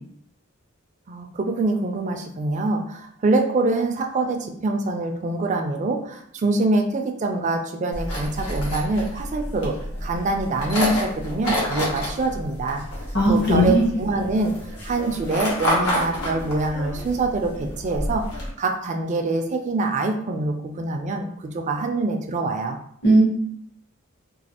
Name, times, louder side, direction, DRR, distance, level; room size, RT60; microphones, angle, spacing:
voice 1, 1.1-9.8 10.0-12.8 13.3-14.5 14.8-22.8, right 2 dB, 35° right, 4 dB, 0.3 m, -25 dB
sound 1, 7.9-18.5, left 1 dB, 85° left, 1.0 m, -29 dB
voice 2, 13.1-13.8 23.0-23.2, right 1 dB, 55° left, -3 dB, 0.9 m, -17 dB
3.1 x 2.3 x 2.8 m, 0.69 s
head